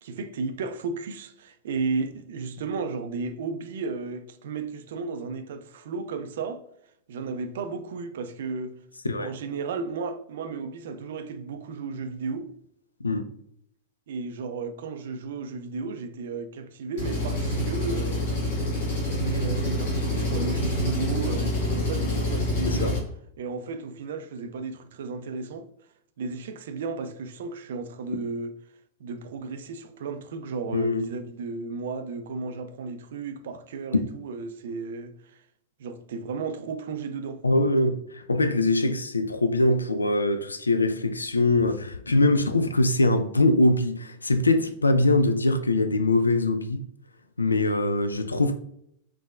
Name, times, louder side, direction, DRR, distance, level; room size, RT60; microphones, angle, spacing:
voice 1, 0.0-6.6 7.1-8.8 9.2-12.5 14.1-18.2 19.1-23.0 23.4-25.7 26.2-28.5 29.0-35.1 35.8-37.4, right 4 dB, 60° right, 0.3 m, -34 dB
Engine, 17.0-23.0, left 1 dB, 55° left, 1.3 m, -27 dB
voice 2, 30.7-31.1 37.4-46.8 47.4-48.6, left 2 dB, 80° left, 0.3 m, -23 dB
3.5 x 3.1 x 2.4 m
figure-of-eight pair, 90°, 0 cm